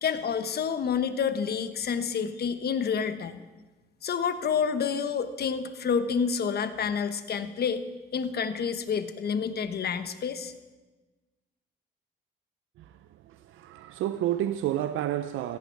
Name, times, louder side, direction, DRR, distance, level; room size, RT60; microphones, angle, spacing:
voice 1, 0.0-3.4 4.0-7.9 8.1-10.5, left 6 dB, 55° left, 1.2 m, -28 dB
voice 2, 13.2-15.6, right 12 dB, 80° right, 0.6 m, -30 dB
17.0 x 14.5 x 4.7 m
cardioid pair, 90°, 20 cm